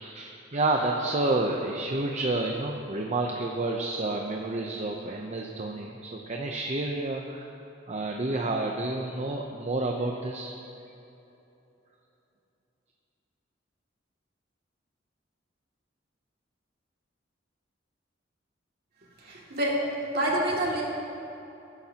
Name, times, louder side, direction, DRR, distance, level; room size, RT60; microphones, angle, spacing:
voice 1, 0.0-7.5 7.9-10.5, right 2 dB, 35° right, 1 dB, 0.7 m, -29 dB
voice 2, 19.2-19.8 20.1-20.8, right 1 dB, 55° right, -4 dB, 2.4 m, -27 dB
18.5 x 10.0 x 2.9 m, 2.9 s
head